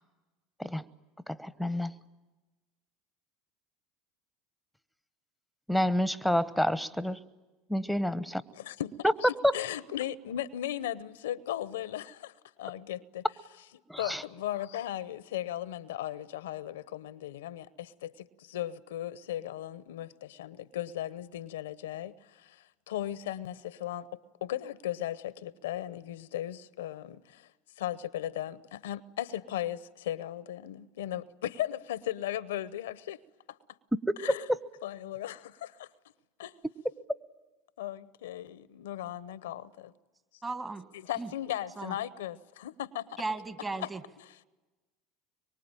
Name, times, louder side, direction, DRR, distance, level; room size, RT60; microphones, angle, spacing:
voice 1, 1.3-1.9 5.7-7.2 7.7-8.4 9.4-9.5 13.9-14.2 34.1-34.2 34.5-34.6, equal, ahead, 1.0 m, -28 dB
voice 2, 8.5-13.2 14.0-27.5 27.8-33.2 33.5-33.6 34.2-34.4 34.8-35.9 36.4-36.6 37.8-39.9 40.9-43.2 43.8-43.9, left 12 dB, 85° left, 0.8 m, -37 dB
voice 3, 40.4-40.9 41.2-41.3 41.8-42.0 43.2-44.0, right 3 dB, 20° right, 1.9 m, -36 dB
24.5 x 23.5 x 9.0 m
hypercardioid pair, 85°, 0 cm